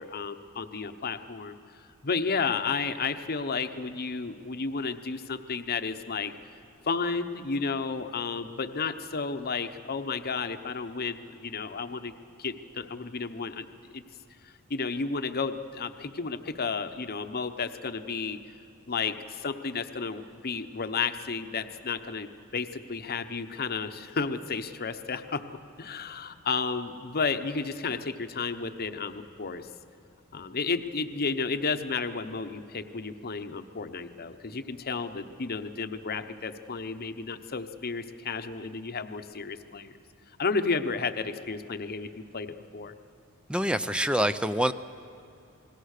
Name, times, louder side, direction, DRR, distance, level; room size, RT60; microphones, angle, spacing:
voice 1, 0.0-1.6 2.0-6.3 6.8-12.1 12.4-13.7 13.9-14.0 14.4-18.4 18.9-25.4 25.8-29.7 30.3-39.9 40.4-42.9, left 4 dB, 45° left, 9 dB, 0.9 m, -32 dB
voice 2, 43.5-44.7, right 1 dB, 5° right, 11 dB, 0.5 m, -26 dB
28.0 x 19.5 x 6.6 m, 2.9 s
head